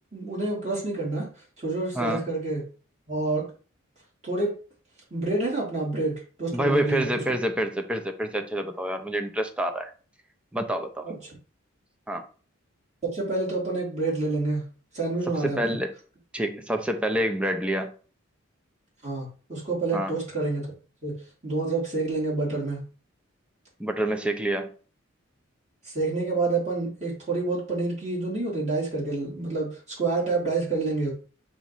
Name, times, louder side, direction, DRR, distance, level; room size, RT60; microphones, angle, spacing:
voice 1, 0.1-1.3 1.6-2.6 3.1-3.5 4.2-4.5 5.1-7.2 11.0-11.3 13.0-14.6 14.9-15.8 19.0-20.7 21.0-22.8 25.8-31.1, right 3 dB, 35° right, 3.3 m, -28 dB
voice 2, 6.5-9.9 10.5-11.1 12.1-12.3 15.4-15.9 16.3-17.9 19.9-20.2 23.8-24.7, right 1 dB, 5° right, 0.6 m, -27 dB
6.2 x 3.1 x 5.5 m
head